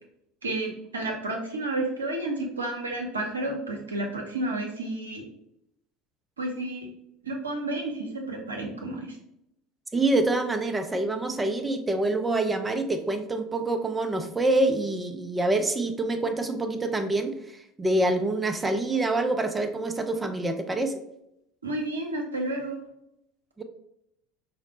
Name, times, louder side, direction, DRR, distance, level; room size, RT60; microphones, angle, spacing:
voice 1, 0.4-5.2 6.4-6.9 7.2-9.2 21.6-22.8, right 2 dB, 85° right, 1 dB, 0.6 m, -31 dB
voice 2, 9.9-20.9 23.6-23.7, right 2 dB, 15° right, 6 dB, 0.4 m, -26 dB
4.8 x 2.0 x 2.9 m, 0.79 s
figure-of-eight pair, 70°, 0 cm